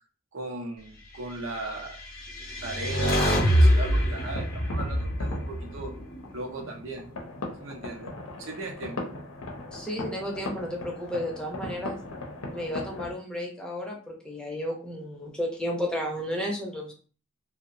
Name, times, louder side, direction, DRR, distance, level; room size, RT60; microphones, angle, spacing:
voice 1, 0.3-2.0 2.6-5.9 6.3-7.1 7.6-8.1 8.4-9.1, right 3 dB, 70° right, 2 dB, 0.6 m, -37 dB
sound 1, 2.0-6.3, equal, 45° left, 0.7 m, -24 dB
sound 2, 3.8-13.1, left 2 dB, 90° left, 0.6 m, -39 dB
voice 2, 9.7-12.0 12.5-16.9, equal, 5° left, -2 dB, 0.5 m, -33 dB
2.7 x 2.1 x 2.5 m, 0.38 s
head